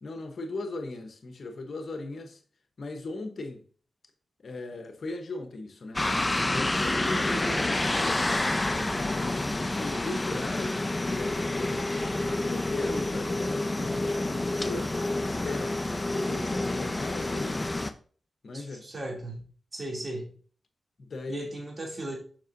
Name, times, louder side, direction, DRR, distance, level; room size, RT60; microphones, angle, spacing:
voice 1, 0.0-2.4 2.8-3.6 4.4-6.1 6.5-11.9 12.5-14.9 15.2-15.8 16.1-17.6 18.4-18.9 21.0-21.4, left 2 dB, 65° left, 1.0 m, -38 dB
sound 1, 6.0-17.9, left 2 dB, 25° left, 0.7 m, -28 dB
voice 2, 6.7-7.0 18.5-19.4 19.7-20.3 21.3-22.2, right 1 dB, 40° right, 2.7 m, -37 dB
7.3 x 6.0 x 2.6 m
supercardioid pair, 40°, 0 cm